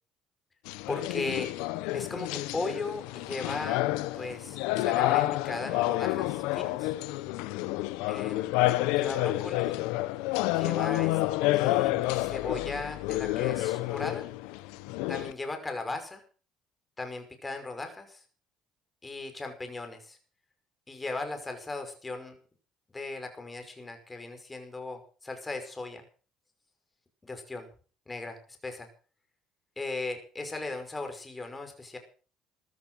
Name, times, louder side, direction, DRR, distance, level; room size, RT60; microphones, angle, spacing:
sound 1, 0.6-15.3, left 18 dB, 85° left, 1.0 m, -29 dB
voice 1, 0.9-1.5 1.9-3.8 4.1-6.9 8.1-8.5 8.9-9.8 10.5-11.2 11.5-14.3 15.1-16.2 17.0-18.2 19.0-20.2 20.9-22.4 22.9-26.0 27.2-27.7 28.1-28.9 29.8-32.0, left 2 dB, 20° left, 6 dB, 5.7 m, -37 dB
15.0 x 12.5 x 6.4 m, 0.40 s
supercardioid pair, 80°, 0 cm